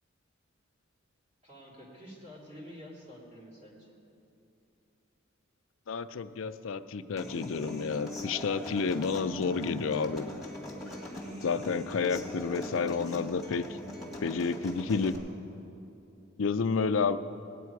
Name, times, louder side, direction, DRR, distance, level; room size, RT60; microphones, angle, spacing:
voice 1, 1.4-4.0, equal, 35° right, -4 dB, 3.0 m, -49 dB
voice 2, 5.9-10.3 11.4-13.7 14.2-15.2 16.4-17.2, left 5 dB, 70° left, 10 dB, 0.5 m, -30 dB
Human voice / Acoustic guitar, 7.2-15.2, left 1 dB, ahead, 1.8 m, -41 dB
18.5 x 9.3 x 4.7 m, 2.8 s
head